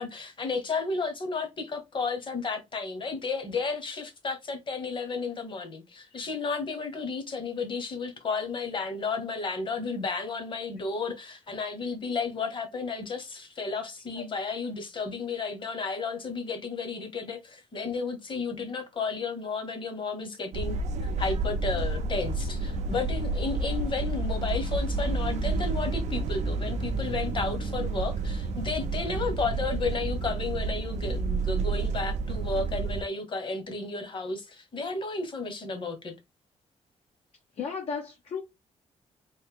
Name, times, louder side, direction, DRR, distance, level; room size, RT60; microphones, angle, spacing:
voice 1, 0.0-36.1, left 4 dB, 45° left, 1.2 m, -33 dB
sound 1, 20.5-33.0, right 3 dB, 75° right, 0.5 m, -30 dB
voice 2, 37.6-38.4, left 6 dB, 60° left, 0.7 m, -34 dB
3.3 x 2.6 x 3.6 m
cardioid pair, 110°, 12 cm